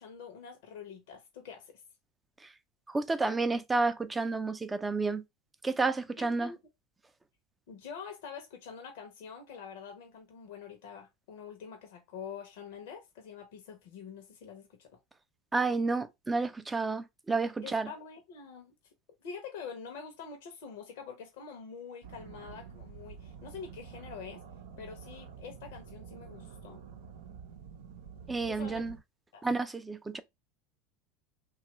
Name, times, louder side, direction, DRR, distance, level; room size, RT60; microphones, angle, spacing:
voice 1, 0.0-1.8 6.2-6.6 7.7-14.9 17.6-18.7 19.2-24.4 24.8-26.8 28.5-28.9 29.3-29.5, left 6 dB, 70° left, 0.7 m, -46 dB
voice 2, 2.9-5.2 5.6-6.5 15.5-17.9 28.3-28.9 29.4-30.2, right 3 dB, 15° right, 0.4 m, -30 dB
sound 1, 22.0-29.0, right 6 dB, 75° right, 0.5 m, -48 dB
2.9 x 2.3 x 2.9 m
hypercardioid pair, 85°, 0 cm